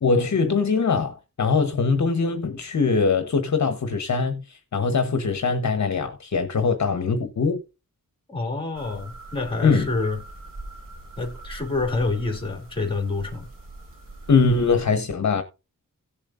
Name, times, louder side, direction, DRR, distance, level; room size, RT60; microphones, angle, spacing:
voice 1, 0.0-7.6 9.6-9.9 14.3-15.4, left 4 dB, 55° left, 1.0 m, -22 dB
voice 2, 8.3-10.2 11.2-13.5, left 3 dB, 15° left, 2.7 m, -27 dB
sound 1, 8.7-14.8, right 2 dB, 70° right, 4.0 m, -42 dB
17.0 x 7.2 x 2.5 m
wide cardioid pair, 140°, 34 cm